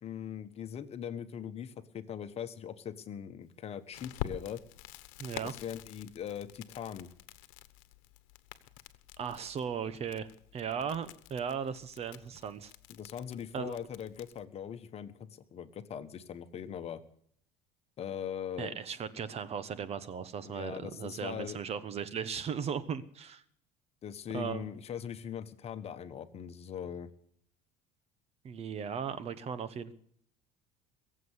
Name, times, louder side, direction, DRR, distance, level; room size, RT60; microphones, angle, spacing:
voice 1, 0.0-4.6 5.4-7.1 12.9-17.0 18.0-18.8 20.4-21.6 24.0-27.1, left 8 dB, 40° left, 10 dB, 1.3 m, -41 dB
Crackle, 3.9-14.4, left 13 dB, 80° left, 1.2 m, -47 dB
voice 2, 5.2-5.5 9.2-12.7 13.5-13.8 18.6-23.4 24.3-24.7 28.4-29.9, right 7 dB, 40° right, 15 dB, 1.1 m, -37 dB
22.0 x 7.7 x 8.2 m, 0.64 s
supercardioid pair, 115°, 17 cm